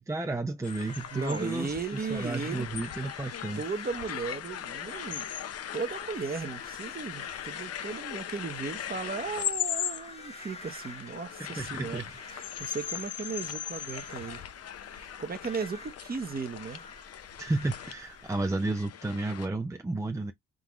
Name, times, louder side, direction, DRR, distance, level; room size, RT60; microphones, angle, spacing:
voice 1, 0.0-3.6 11.4-12.1 17.4-20.3, right 2 dB, 10° right, 0.6 m, -32 dB
sound 1, 0.6-19.5, left 10 dB, 55° left, 0.7 m, -39 dB
sound 2, 0.7-18.5, left 2 dB, 20° left, 1.2 m, -49 dB
voice 2, 1.1-2.7 3.6-5.3 5.7-12.0 12.3-14.4 14.9-16.8, right 5 dB, 30° right, 1.0 m, -36 dB
3.8 x 3.7 x 3.0 m
cardioid pair, 90°, 30 cm